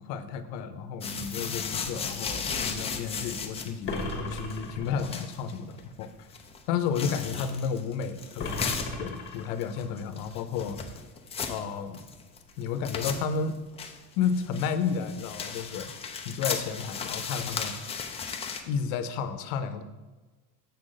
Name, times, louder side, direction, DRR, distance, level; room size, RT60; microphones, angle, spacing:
voice 1, 0.0-6.3 6.7-8.7 9.0-10.8 11.5-12.1 12.6-13.6 14.2-15.9 16.2-17.7 18.7-19.8, left 6 dB, 80° left, 11 dB, 0.7 m, -32 dB
sound 1, 1.0-18.6, left 5 dB, 15° left, 0.4 m, -36 dB
sound 2, 3.8-5.3 8.4-9.9, left 2 dB, 30° left, 1.1 m, -36 dB
6.9 x 3.9 x 6.4 m, 1.2 s
cardioid pair, 155°, 38 cm